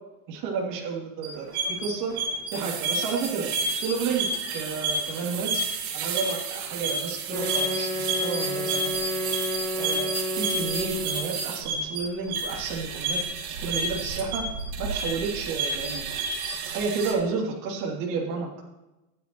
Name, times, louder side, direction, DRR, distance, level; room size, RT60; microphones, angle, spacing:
voice 1, 0.3-2.1 2.5-3.5 3.7-5.6 5.9-9.2 9.7-14.4 14.8-16.0 16.7-18.6, right 5 dB, 45° right, -2 dB, 3.0 m, -31 dB
sound 1, 1.2-17.1, right 3 dB, 65° right, 2.6 m, -30 dB
Wind instrument woodwind instrument, 7.3-11.4, left 2 dB, 5° left, 1.6 m, -31 dB
14.5 x 10.0 x 3.1 m, 1.0 s
supercardioid pair, 160°, 46 cm